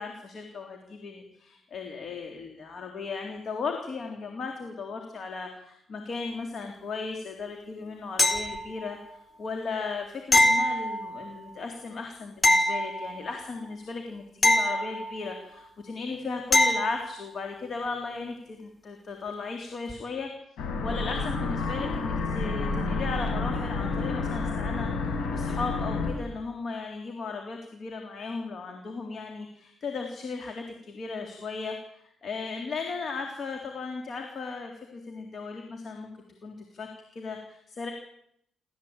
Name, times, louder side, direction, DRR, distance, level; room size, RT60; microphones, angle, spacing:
voice 1, 0.0-20.3 20.8-36.1 36.4-37.9, left 4 dB, 50° left, 3 dB, 3.8 m, -36 dB
sound 1, 8.2-9.0 10.3-11.4 12.4-13.5 14.4-15.5 16.5-17.1 19.9-20.0, left 1 dB, 20° left, 4.1 m, -24 dB
sound 2, 20.6-26.1, left 3 dB, 80° left, 6.8 m, -30 dB
27.5 x 14.5 x 9.0 m, 0.75 s
cardioid pair, 90°, 0 cm